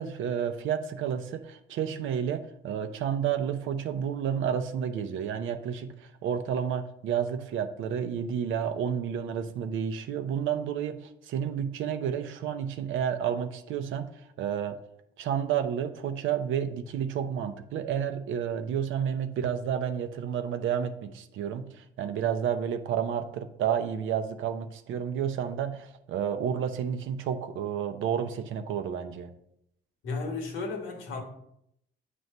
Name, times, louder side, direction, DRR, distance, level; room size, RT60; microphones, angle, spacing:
voice 1, 0.0-14.8 15.2-29.3, right 8 dB, 80° right, 0.6 m, -31 dB
voice 2, 30.0-31.2, left 3 dB, 90° left, 1.4 m, -33 dB
8.0 x 3.1 x 5.3 m
cardioid pair, 90°, 20 cm